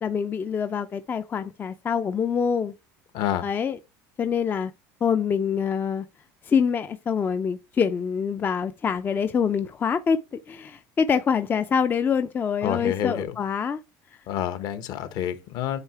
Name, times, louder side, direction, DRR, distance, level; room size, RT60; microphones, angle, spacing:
voice 1, 0.0-2.7 3.4-3.8 4.2-4.7 5.0-6.1 6.4-10.2 10.5-13.8, left 6 dB, 25° left, 0.4 m, -25 dB
voice 2, 3.1-3.5 12.6-13.3 14.3-15.8, left 10 dB, 55° left, 1.0 m, -28 dB
8.1 x 2.8 x 4.5 m
cardioid pair, 125°, 8 cm